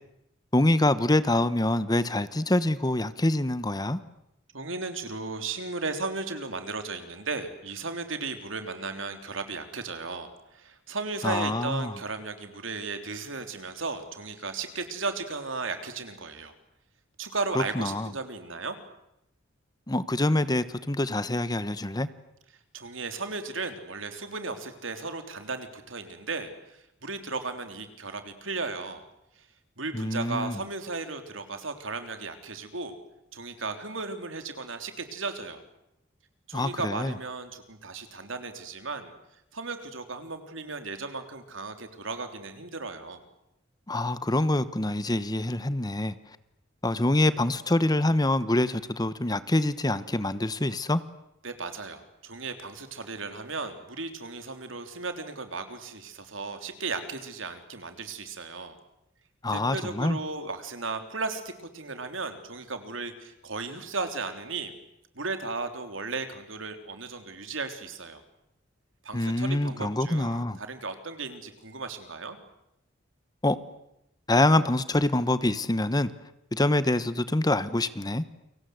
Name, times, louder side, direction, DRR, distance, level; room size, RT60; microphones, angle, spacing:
voice 1, 0.5-4.0 11.2-11.9 17.5-18.1 19.9-22.1 29.9-30.6 36.5-37.1 43.9-46.1 46.8-51.0 59.4-60.2 69.1-70.6 73.4-73.6 74.3-76.1 76.5-78.2, left 1 dB, 20° left, 14 dB, 1.1 m, -25 dB
voice 2, 4.5-16.5 17.2-18.8 22.7-29.0 29.4-29.5 29.8-33.0 33.3-35.6 36.5-39.1 39.5-43.2 51.4-58.8 59.5-64.7 65.1-68.2 69.0-72.4, right 3 dB, 75° right, 7 dB, 3.5 m, -35 dB
30.0 x 24.5 x 7.9 m, 0.84 s
head